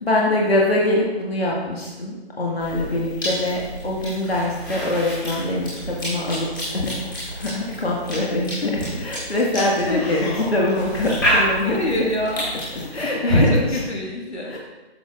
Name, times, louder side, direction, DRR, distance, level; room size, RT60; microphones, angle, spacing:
voice 1, 0.0-6.9 7.4-12.0 12.9-13.8 14.5-14.6, left 1 dB, 70° left, -3 dB, 1.8 m, -23 dB
Cough / Chewing mastication, 2.6-13.0, equal, 20° left, 2.3 m, -29 dB
voice 2, 9.5-10.1 11.3-14.5, left 1 dB, 90° left, -1 dB, 2.0 m, -28 dB
12.0 x 6.6 x 2.5 m, 1.1 s
figure-of-eight pair, 175°, 32 cm